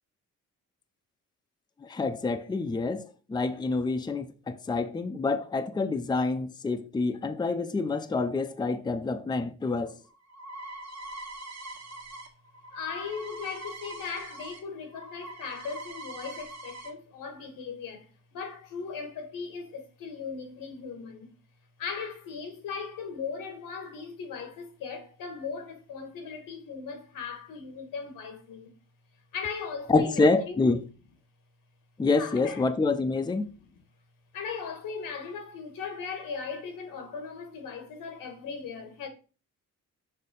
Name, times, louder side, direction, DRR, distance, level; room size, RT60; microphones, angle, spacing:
voice 1, 1.8-10.0 29.9-30.8 32.0-33.5, left 3 dB, 15° left, 0.5 m, -27 dB
sound 1, 9.8-14.6 14.9-16.9, right 2 dB, 50° right, 1.5 m, -43 dB
voice 2, 12.7-21.3 21.8-28.7 29.3-30.6 32.1-32.6 33.6-33.7 34.3-39.1, left 5 dB, 90° left, 1.5 m, -38 dB
6.5 x 2.8 x 5.3 m
cardioid pair, 100°, 33 cm